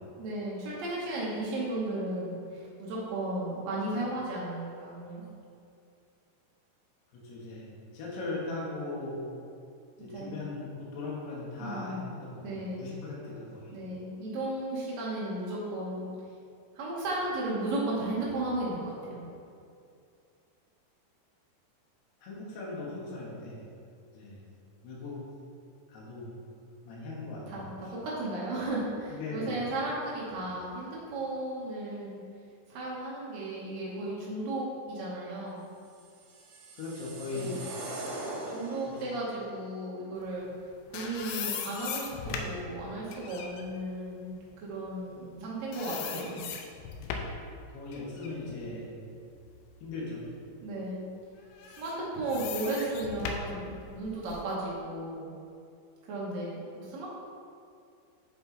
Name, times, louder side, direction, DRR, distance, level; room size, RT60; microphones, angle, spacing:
voice 1, 0.2-5.2 10.1-10.5 11.6-12.0 12.4-12.9 13.7-16.1 16.7-19.3 27.5-32.2 32.7-35.7 37.3-37.6 38.5-40.5 40.9-46.5 50.6-51.0 51.8-55.3 56.1-57.1, right 1 dB, 85° right, -6 dB, 1.5 m, -35 dB
voice 2, 7.1-7.7 7.9-9.2 10.0-13.8 22.2-23.6 24.1-24.4 24.8-25.2 25.9-26.3 26.8-27.6 29.1-29.5 36.7-37.6 38.9-39.0 47.7-48.9 49.8-50.3, left 3 dB, 70° left, -5 dB, 3.3 m, -38 dB
sound 1, 36.0-39.2, right 2 dB, 65° right, 2.1 m, -41 dB
sound 2, 40.5-45.4 45.7-47.5 47.9-49.9 50.4-50.5 51.5-54.5, left 6 dB, 85° left, 2.8 m, -39 dB
7.7 x 5.4 x 4.0 m, 2.4 s
omnidirectional pair, 5.1 m